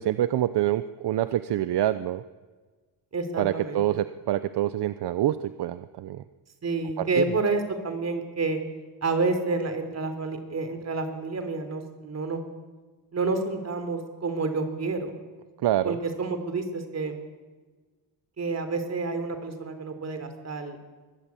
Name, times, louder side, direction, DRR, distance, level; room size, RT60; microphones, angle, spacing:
voice 1, 0.0-2.2 3.4-6.2 7.0-7.2 15.6-16.0, right 13 dB, 65° right, 13 dB, 0.9 m, -26 dB
voice 2, 3.1-3.8 6.6-8.6 9.0-12.4 13.1-15.1 15.8-17.2 18.4-20.8, right 3 dB, 35° right, 7 dB, 3.7 m, -29 dB
24.0 x 19.5 x 8.6 m, 1.3 s
cardioid pair, 135°, 43 cm